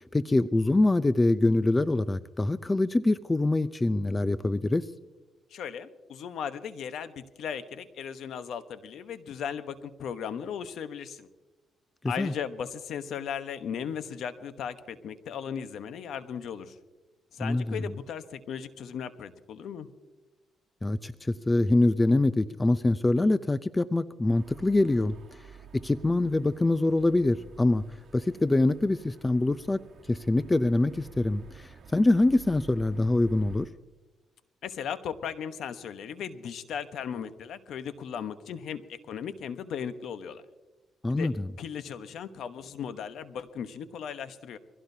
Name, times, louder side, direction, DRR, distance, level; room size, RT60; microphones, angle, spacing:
voice 1, 0.1-4.8 12.2-12.3 17.4-17.9 20.8-25.1 25.7-27.8 28.1-29.8 30.1-33.7 41.0-41.5, left 2 dB, 20° left, 14 dB, 0.5 m, -24 dB
voice 2, 5.5-11.3 12.0-16.8 17.3-19.9 34.6-40.4 41.1-41.3 41.6-44.6, left 8 dB, 70° left, 10 dB, 1.0 m, -37 dB
sound 1, 24.3-33.7, right 6 dB, 55° right, 2.3 m, -51 dB
24.0 x 16.0 x 2.8 m, 1.2 s
cardioid pair, 90°, 0 cm